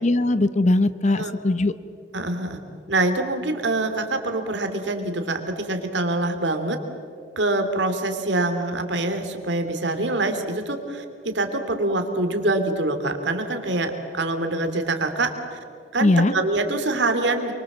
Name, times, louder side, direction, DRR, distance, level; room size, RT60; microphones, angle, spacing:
voice 1, 0.0-1.7 16.0-16.3, left 2 dB, 40° left, 14 dB, 0.8 m, -20 dB
voice 2, 2.1-2.6 2.9-6.8 7.4-15.6 15.9-17.5, right 2 dB, 70° right, 6 dB, 2.9 m, -25 dB
29.5 x 23.5 x 7.4 m, 2.4 s
head